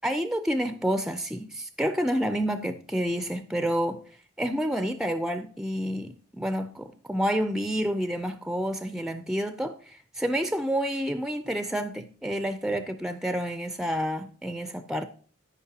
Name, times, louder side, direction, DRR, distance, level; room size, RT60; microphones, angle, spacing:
voice 1, 0.0-4.0 4.4-15.0, equal, 5° right, 9 dB, 0.4 m, -29 dB
13.5 x 5.3 x 2.8 m, 0.41 s
head